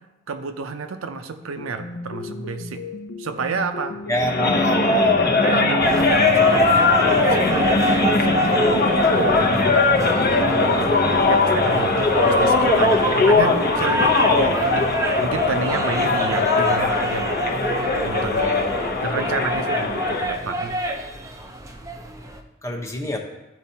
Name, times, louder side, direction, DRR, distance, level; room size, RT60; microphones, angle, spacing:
voice 1, 0.3-2.8 3.2-4.0 4.4-5.0 5.4-17.5 18.0-18.5 18.9-20.7, right 4 dB, 70° right, 7 dB, 0.5 m, -31 dB
sound 1, 1.6-18.9, left 3 dB, 80° left, 0.7 m, -36 dB
sound 2, 4.1-20.3, left 3 dB, 45° left, 0.8 m, -19 dB
voice 2, 4.1-5.5 14.3-14.7 18.2-18.7 22.6-23.2, equal, 15° left, 1 dB, 0.8 m, -28 dB
sound 3, 5.8-22.4, right 1 dB, 15° right, 0.5 m, -28 dB
12.5 x 4.6 x 2.8 m, 1.0 s
head